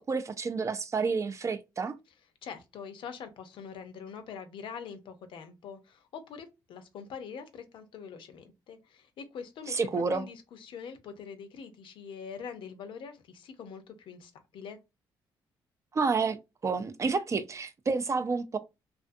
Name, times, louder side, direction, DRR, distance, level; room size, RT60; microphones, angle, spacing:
voice 1, 0.0-2.0 9.7-10.3 15.9-16.4 16.6-18.6, right 4 dB, 35° right, 0.4 m, -29 dB
voice 2, 2.4-14.8, left 6 dB, 70° left, 0.6 m, -44 dB
2.5 x 2.4 x 2.5 m
cardioid pair, 75°, 9 cm